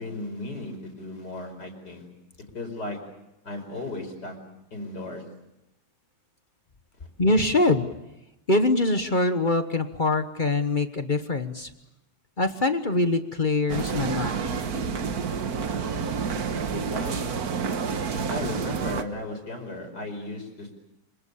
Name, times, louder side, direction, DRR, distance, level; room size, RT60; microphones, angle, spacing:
voice 1, 0.0-2.0 2.5-3.0 3.4-4.4 4.7-5.2 16.7-17.2 18.1-20.7, left 2 dB, 55° left, 5 dB, 5.7 m, -35 dB
voice 2, 7.2-7.9 8.5-11.7 12.4-14.5, left 2 dB, 30° left, 9 dB, 1.1 m, -24 dB
sound 1, 13.7-19.0, right 5 dB, 55° right, 1.7 m, -29 dB
26.0 x 25.5 x 7.0 m, 0.90 s
omnidirectional pair, 2.2 m